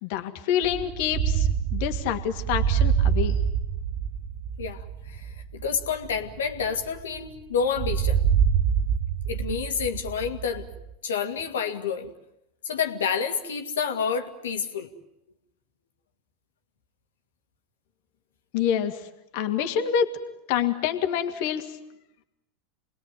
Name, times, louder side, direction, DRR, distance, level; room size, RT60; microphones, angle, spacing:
voice 1, 0.0-3.4 18.5-19.1 19.3-20.1 20.5-21.8, left 9 dB, 60° left, 6 dB, 2.4 m, -27 dB
sound 1, 0.6-7.3 7.8-10.9, right 8 dB, 55° right, 1.3 m, -26 dB
voice 2, 4.6-8.2 9.3-10.7 11.0-12.1 12.6-14.9, left 6 dB, 75° left, 6 dB, 2.4 m, -29 dB
29.0 x 21.0 x 9.3 m, 0.86 s
figure-of-eight pair, 85°, 0 cm